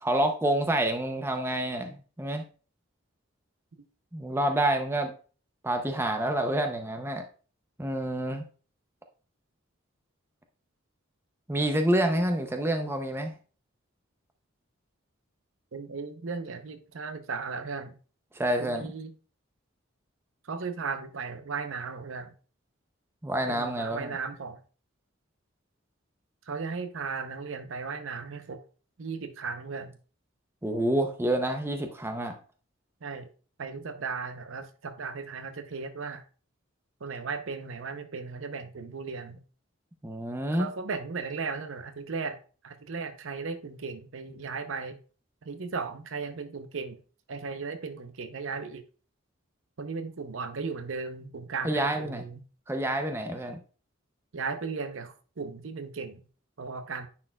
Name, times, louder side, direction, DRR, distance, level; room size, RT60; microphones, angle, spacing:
voice 1, 0.0-2.4 4.1-5.1 5.6-7.3 7.8-8.5 11.5-13.4 18.3-18.9 23.2-24.2 30.6-32.3 40.0-40.7 51.6-52.2 52.7-53.6, right 1 dB, 10° right, 0.5 m, -28 dB
voice 2, 15.7-18.0 18.6-19.1 20.5-22.3 23.5-24.6 26.5-28.6 29.0-29.9 33.0-33.3 33.6-36.2 37.0-39.4 40.6-42.4 42.6-45.0 45.4-47.0 47.3-48.8 49.8-52.4 54.3-56.2 56.6-57.1, right 4 dB, 75° right, 0.7 m, -36 dB
9.6 x 4.4 x 2.2 m
head